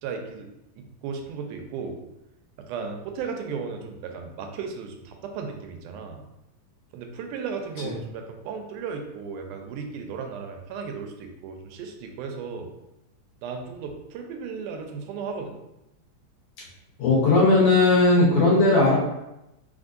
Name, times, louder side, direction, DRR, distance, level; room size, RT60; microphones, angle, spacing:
voice 1, 0.0-0.5 0.8-2.0 2.7-6.2 6.9-12.7 13.4-15.6 18.2-18.4, right 5 dB, 85° right, 4 dB, 2.1 m, -35 dB
voice 2, 17.0-19.0, left 2 dB, 60° left, -5 dB, 1.6 m, -17 dB
4.4 x 3.9 x 2.5 m, 0.90 s
omnidirectional pair, 3.6 m